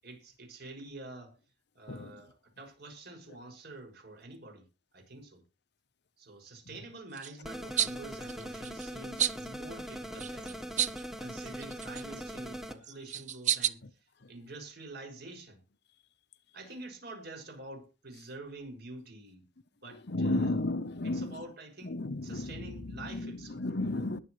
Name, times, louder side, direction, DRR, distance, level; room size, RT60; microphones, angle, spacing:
voice 1, 0.0-1.4 1.7-4.7 4.9-5.4 6.2-10.7 11.2-15.6 16.5-19.4 19.8-20.5 21.0-23.6, right 2 dB, 60° right, 6.7 m, -47 dB
sound 1, 7.1-7.3 7.8-7.9 8.2-8.9 9.2-9.5 10.2-11.1 11.4-12.2 12.8-13.7, right 10 dB, 40° right, 0.7 m, -31 dB
sound 2, 7.4-12.7, equal, ahead, 1.4 m, -41 dB
voice 2, 20.1-21.4 21.8-24.2, left 2 dB, 65° left, 1.0 m, -33 dB
21.5 x 7.7 x 3.2 m
head